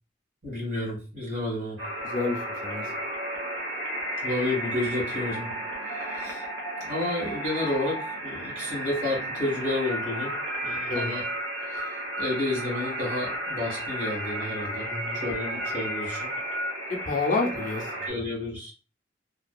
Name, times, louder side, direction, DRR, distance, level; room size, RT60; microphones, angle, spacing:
voice 1, 0.4-1.8 4.2-5.5 5.8-6.4 6.8-10.3 10.6-11.2 11.6-14.9 15.1-16.3 18.1-18.7, left 2 dB, 45° right, -2 dB, 1.3 m, -31 dB
sound 1, 1.8-18.1, right 1 dB, 70° right, 0.8 m, -33 dB
voice 2, 2.0-2.9 10.9-11.1 14.9-15.2 16.9-18.1, left 3 dB, 45° left, 2 dB, 0.5 m, -29 dB
2.6 x 2.2 x 2.2 m, 0.34 s
head